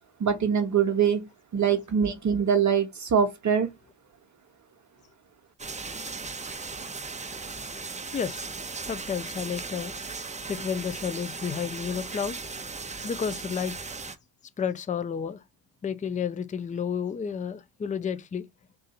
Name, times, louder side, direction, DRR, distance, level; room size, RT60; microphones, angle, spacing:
voice 1, 0.2-1.2 1.5-3.7, right 7 dB, 35° right, 0.9 m, -23 dB
sound 1, 5.6-14.2, right 4 dB, 15° right, 0.7 m, -37 dB
voice 2, 8.1-8.5 8.9-9.9 10.5-12.4 13.0-13.8 14.6-15.4 15.8-18.4, left 7 dB, 15° left, 0.4 m, -31 dB
3.8 x 2.6 x 4.2 m
supercardioid pair, 75°, 49 cm